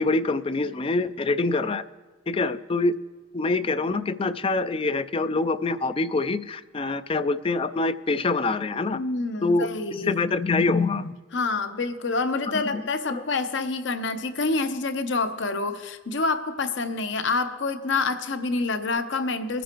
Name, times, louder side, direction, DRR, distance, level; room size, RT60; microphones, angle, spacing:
voice 1, 0.0-1.8 2.3-3.0 3.3-9.0 9.4-11.1 12.5-13.2, left 3 dB, 30° left, 12 dB, 0.4 m, -25 dB
voice 2, 8.9-10.2 11.3-19.6, left 3 dB, 65° left, 9 dB, 0.8 m, -27 dB
21.0 x 10.0 x 3.0 m, 1.4 s
head